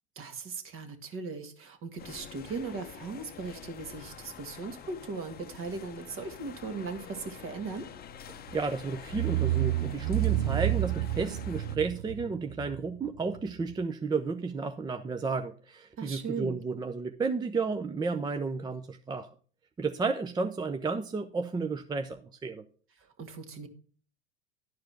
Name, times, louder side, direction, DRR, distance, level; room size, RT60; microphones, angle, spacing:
voice 1, 0.2-7.9 16.0-16.6 23.0-23.7, right 4 dB, 40° right, 8 dB, 1.7 m, -38 dB
sound 1, 2.0-11.8, left 8 dB, 30° left, 0.7 m, -47 dB
voice 2, 8.3-19.3 19.8-22.6, right 4 dB, 15° right, 7 dB, 0.5 m, -32 dB
sound 2, 8.5-8.7 9.1-13.7, right 15 dB, 75° right, 0.5 m, -30 dB
11.0 x 4.8 x 5.8 m, 0.42 s
hypercardioid pair, 95°, 32 cm